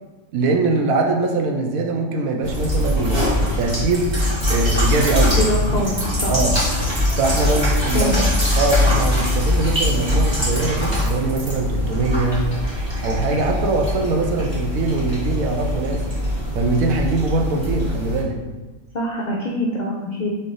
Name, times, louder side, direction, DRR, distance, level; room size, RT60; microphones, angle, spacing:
voice 1, 0.3-4.1 4.5-5.8 6.3-6.5 7.2-8.2 8.6-12.5 13.0-16.1 16.5-18.4, right 3 dB, 80° right, 3 dB, 1.1 m, -22 dB
sound 1, 2.4-18.2, left 1 dB, 20° right, 1.0 m, -22 dB
voice 2, 5.4-6.0 6.2-6.3 7.9-8.3 18.9-20.3, left 1 dB, 80° left, -2 dB, 0.4 m, -24 dB
3.9 x 3.3 x 3.8 m, 1.2 s
omnidirectional pair, 1.5 m